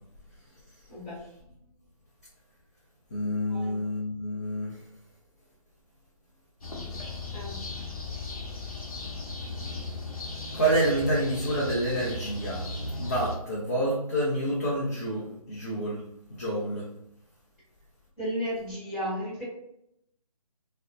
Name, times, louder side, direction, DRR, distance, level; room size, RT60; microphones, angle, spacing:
voice 1, 3.1-4.8 10.5-12.7 13.0-16.0 16.3-16.9, right 1 dB, 25° left, -6 dB, 0.4 m, -28 dB
sound 1, 6.6-13.4, left 2 dB, 65° left, 0.7 m, -36 dB
voice 2, 18.2-19.4, equal, 5° left, -12 dB, 1.2 m, -33 dB
2.5 x 2.0 x 2.5 m, 0.77 s
figure-of-eight pair, 155°, 19 cm